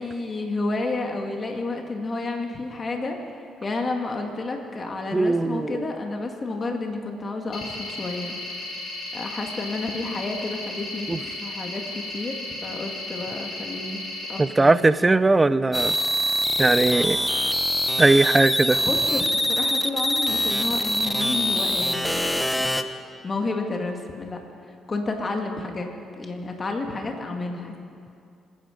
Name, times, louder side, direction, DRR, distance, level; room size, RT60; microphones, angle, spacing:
voice 1, 0.0-8.3 9.1-14.0 14.3-14.8 18.8-22.7 23.2-24.4 24.9-27.8, left 2 dB, 35° left, 2 dB, 2.0 m, -31 dB
voice 2, 5.1-5.9 11.1-11.2 14.4-16.0 16.6-17.2 18.0-18.8, right 2 dB, 20° right, 15 dB, 0.5 m, -19 dB
sound 1, 7.5-14.4, left 2 dB, 65° left, 4.6 m, -35 dB
sound 2, 15.7-22.8, equal, 5° left, 0.8 m, -24 dB
26.0 x 10.5 x 5.2 m, 2.4 s
cardioid pair, 90°, 0 cm